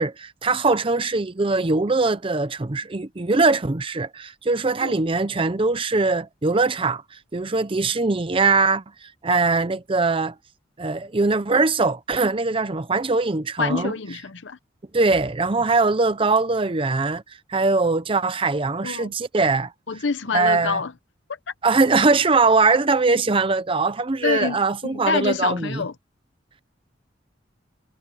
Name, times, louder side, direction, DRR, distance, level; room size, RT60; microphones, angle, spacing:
voice 1, 0.0-7.0 7.3-10.3 10.8-13.9 14.9-17.2 17.5-20.0 20.3-20.8 21.6-25.8, right 3 dB, 30° right, 0.6 m, -21 dB
voice 2, 13.6-14.6 18.8-19.1 19.9-20.9 24.2-24.6 24.8-25.9, left 4 dB, 80° left, 0.9 m, -26 dB
head